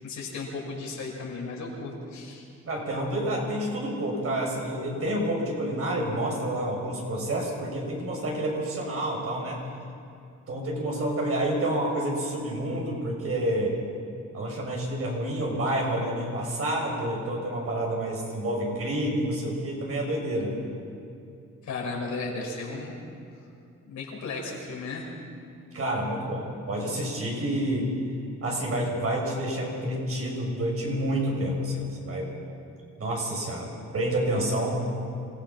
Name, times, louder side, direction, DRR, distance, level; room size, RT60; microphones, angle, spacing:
voice 1, 0.0-2.5 21.6-23.0 23.9-25.0, left 3 dB, 70° left, -2 dB, 6.1 m, -35 dB
voice 2, 2.6-9.6 10.5-13.7 14.3-20.5 25.7-27.9 28.4-32.3 33.0-34.8, right 1 dB, 50° right, -1 dB, 6.8 m, -29 dB
27.0 x 16.5 x 6.0 m, 2.6 s
cardioid pair, 90°, 30 cm